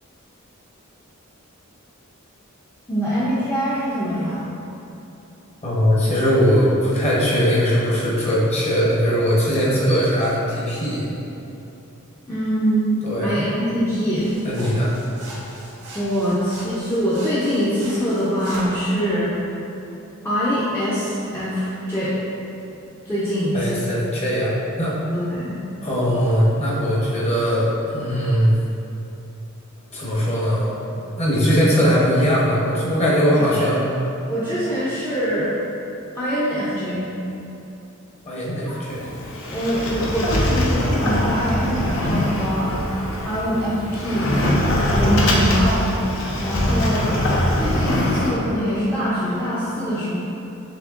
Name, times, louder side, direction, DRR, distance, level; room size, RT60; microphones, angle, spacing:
voice 1, 2.9-4.4 12.3-13.0 13.2-14.3 15.9-19.4 20.2-22.1 23.0-23.8 25.1-25.6 33.4-33.7 34.3-35.5 36.1-37.1 38.6-39.1 39.5-42.7 43.2-44.3 44.9-47.2 47.6-50.2, equal, 10° left, -12 dB, 0.5 m, -23 dB
voice 2, 5.6-11.1 13.0-13.3 14.4-14.9 23.5-24.9 25.8-28.5 29.9-30.7 31.2-33.8 38.3-39.0, equal, 30° left, -7 dB, 0.9 m, -20 dB
sound 1, 14.1-18.8, right 1 dB, 85° right, 1.2 m, -39 dB
Sliding door, 38.9-48.3, left 1 dB, 65° left, 0.6 m, -22 dB
6.3 x 2.8 x 2.5 m, 2.9 s
head